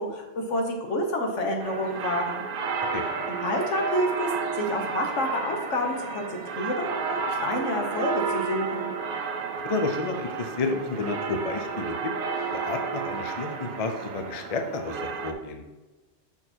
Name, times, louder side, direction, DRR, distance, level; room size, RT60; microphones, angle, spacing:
voice 1, 0.0-2.4 3.3-4.3 4.5-8.9, left 1 dB, 75° left, 2 dB, 1.5 m, -29 dB
sound 1, 1.6-15.3, right 5 dB, 55° right, 0.7 m, -32 dB
voice 2, 9.6-12.1 12.5-15.6, left 3 dB, 35° left, 5 dB, 0.6 m, -31 dB
6.5 x 5.3 x 4.4 m, 1.1 s
omnidirectional pair, 1.3 m